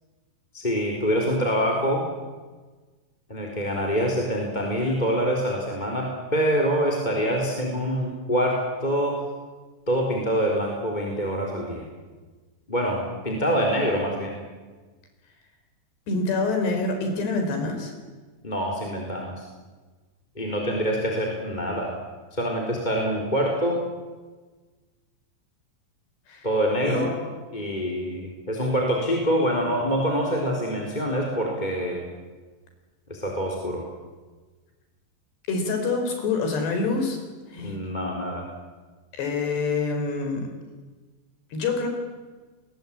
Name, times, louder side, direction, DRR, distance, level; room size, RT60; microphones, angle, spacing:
voice 1, 0.5-2.1 3.3-9.2 9.9-11.9 12.7-14.4 18.4-19.5 20.4-21.9 22.3-23.8 26.4-27.2 27.5-32.0 33.1-33.8 37.6-38.5, equal, 10° left, -1 dB, 3.5 m, -25 dB
voice 2, 16.1-17.9 26.3-26.5 26.8-27.0 35.5-37.2 37.5-37.8 39.2-40.5 41.5-41.9, left 3 dB, 65° left, 5 dB, 6.7 m, -26 dB
30.0 x 21.5 x 8.9 m, 1.3 s
omnidirectional pair, 5.3 m